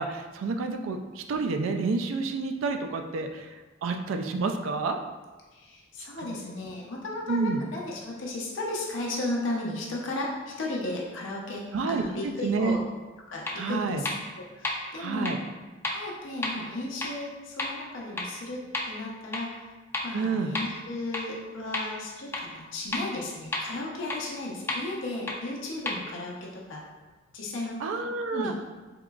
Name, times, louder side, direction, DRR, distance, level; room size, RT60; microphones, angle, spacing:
voice 1, 0.0-3.5 3.8-5.0 6.2-6.4 7.3-7.6 11.7-12.0 12.4-12.8 13.6-14.0 15.0-15.4 20.1-20.5 27.8-28.5, right 4 dB, 85° right, 6 dB, 0.3 m, -29 dB
voice 2, 5.5-12.8 13.3-14.1 14.4-15.3 15.9-18.6 18.9-19.6 20.0-26.8 27.3-27.8 28.3-28.6, left 2 dB, 75° left, -3 dB, 0.7 m, -35 dB
sound 1, 13.5-13.6 14.1-14.2 14.6-14.7 15.3-15.4 15.8-15.9 16.4-16.5 17.0-17.1 17.6-17.7 18.2-18.3 18.7-18.8 19.3-19.4 19.9-20.0 20.6-20.7 21.1-21.2 21.7-21.8 22.3-22.4 22.9-23.0 23.5-23.6 24.1-24.2 24.7-24.8 25.3-25.4 25.9-26.0, left 2 dB, 10° left, 0.3 m, -29 dB
3.6 x 2.9 x 2.3 m, 1.2 s
head